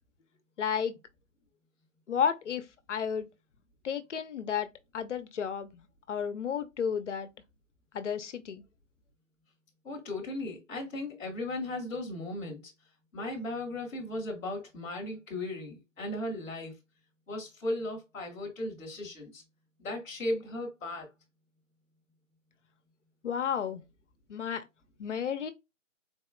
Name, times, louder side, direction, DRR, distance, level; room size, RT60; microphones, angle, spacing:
voice 1, 0.6-0.9 2.1-3.3 3.8-4.7 4.9-7.3 7.9-8.6 23.2-23.8 24.3-24.7 25.0-25.5, left 7 dB, 65° left, 0.7 m, -32 dB
voice 2, 9.8-12.6 13.1-16.7 17.3-19.4 19.8-21.1, left 1 dB, 5° left, 0.5 m, -36 dB
4.0 x 2.7 x 2.5 m
figure-of-eight pair, 145°, 39 cm